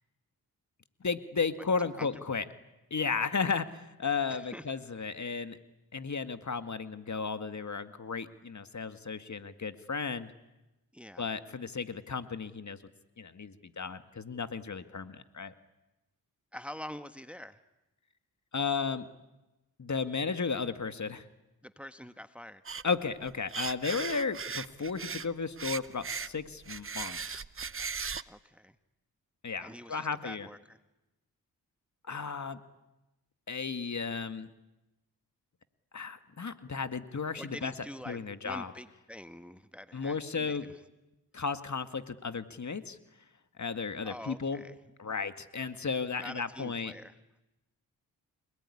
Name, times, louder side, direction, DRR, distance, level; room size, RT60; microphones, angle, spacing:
voice 1, 1.0-2.5 2.9-5.6 5.9-10.3 11.2-12.8 13.2-15.5 18.5-19.1 19.8-21.2 22.8-27.4 29.4-30.5 32.0-32.6 33.5-34.5 35.9-37.7 38.1-38.7 39.9-40.6 41.3-43.0 43.6-44.6 45.0-46.9, left 5 dB, 45° left, 10 dB, 2.0 m, -34 dB
voice 2, 4.3-4.6 10.9-11.3 16.5-17.6 21.6-22.6 28.3-28.8 29.6-30.8 37.4-40.8 44.0-44.8 46.2-47.1, equal, 5° right, 10 dB, 1.4 m, -45 dB
sound 1, 22.7-23.0 23.3-25.3 25.6-28.2, right 6 dB, 35° right, 0.9 m, -37 dB
30.0 x 19.5 x 9.9 m, 1.0 s
supercardioid pair, 45°, 39 cm